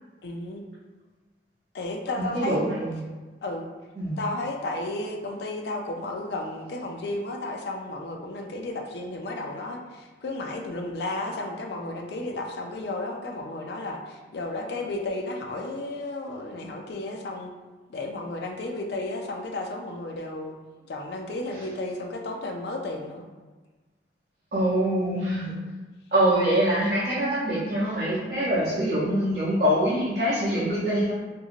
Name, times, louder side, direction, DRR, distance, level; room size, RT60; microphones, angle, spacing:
voice 1, 0.2-0.6 1.7-2.6 3.4-3.7 4.2-17.5 17.9-20.6 20.9-23.3, left 2 dB, 65° left, 2 dB, 0.4 m, -33 dB
voice 2, 2.2-3.1 4.0-4.2 24.5-25.6 26.1-31.1, right 1 dB, 55° right, -11 dB, 0.7 m, -24 dB
2.8 x 2.6 x 2.4 m, 1.3 s
head